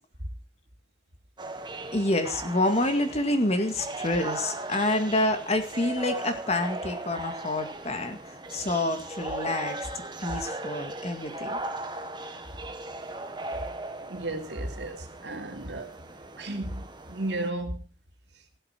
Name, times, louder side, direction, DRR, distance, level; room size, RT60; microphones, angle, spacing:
sound 1, 1.4-17.5, right 2 dB, 25° right, 1.5 m, -38 dB
voice 1, 1.9-9.8 10.2-11.6, left 1 dB, 35° left, 2.1 m, -27 dB
voice 2, 14.1-15.9 16.4-17.8, right 2 dB, 70° right, 2.7 m, -34 dB
16.0 x 7.8 x 6.0 m
head